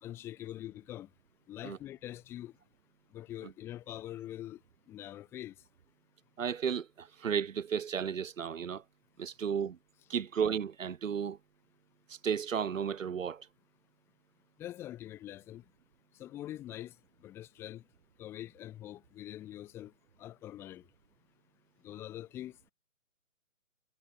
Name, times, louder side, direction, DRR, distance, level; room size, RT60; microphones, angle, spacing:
voice 1, 0.0-1.1 1.5-2.5 3.1-4.6 4.9-5.6 14.6-15.6 16.2-16.9 17.2-17.8 18.2-19.9 20.2-20.9 21.8-22.7, left 13 dB, 5° left, 1.7 m, -44 dB
voice 2, 6.4-8.8 9.2-9.8 10.1-11.4 12.1-13.5, right 7 dB, 70° right, 1.3 m, -33 dB
hypercardioid pair, 175°, 40 cm